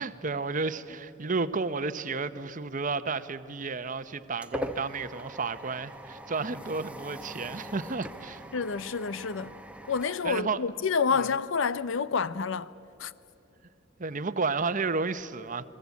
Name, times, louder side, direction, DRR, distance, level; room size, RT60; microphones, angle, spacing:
voice 1, 0.0-8.4 10.2-10.6 14.0-15.6, right 4 dB, 40° right, 0.9 m, -32 dB
sound 1, 3.9-11.1, equal, 5° right, 0.8 m, -42 dB
voice 2, 8.5-9.6 9.9-12.7 13.0-13.1, left 5 dB, 70° left, 0.6 m, -28 dB
29.5 x 21.0 x 8.4 m
head